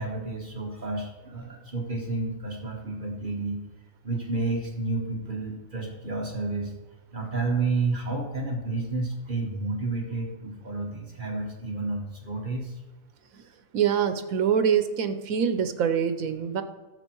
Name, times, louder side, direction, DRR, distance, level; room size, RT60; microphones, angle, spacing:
voice 1, 0.0-3.6 4.0-6.7 7.1-12.8, right 3 dB, 35° right, 1 dB, 1.5 m, -30 dB
voice 2, 13.7-16.6, right 8 dB, 80° right, 10 dB, 1.3 m, -24 dB
12.5 x 7.3 x 4.6 m, 1.2 s
omnidirectional pair, 1.5 m